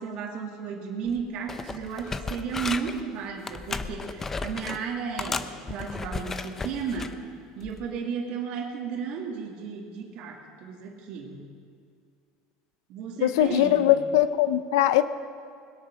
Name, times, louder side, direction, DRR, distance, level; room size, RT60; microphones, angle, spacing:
voice 1, 0.0-7.2 7.6-11.5 12.9-13.9, right 6 dB, 55° right, 0 dB, 2.4 m, -34 dB
sound 1, 1.1-1.2 1.5-3.0 3.4-4.8 5.2-7.1 7.6-7.9, left 4 dB, 20° left, 0.6 m, -34 dB
voice 2, 13.2-15.0, left 13 dB, 90° left, 13 dB, 0.7 m, -21 dB
21.0 x 8.8 x 6.3 m, 2.2 s
supercardioid pair, 135°, 2 cm